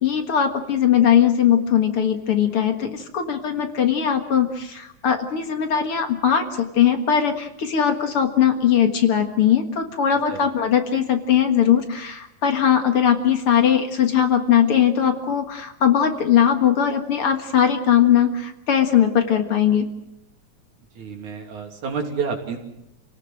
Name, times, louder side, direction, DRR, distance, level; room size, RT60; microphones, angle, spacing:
voice 1, 0.0-19.8, left 9 dB, 55° left, 6 dB, 2.3 m, -20 dB
voice 2, 21.0-22.6, right 5 dB, 80° right, 2 dB, 4.4 m, -29 dB
28.5 x 18.0 x 7.7 m, 0.84 s
omnidirectional pair, 3.4 m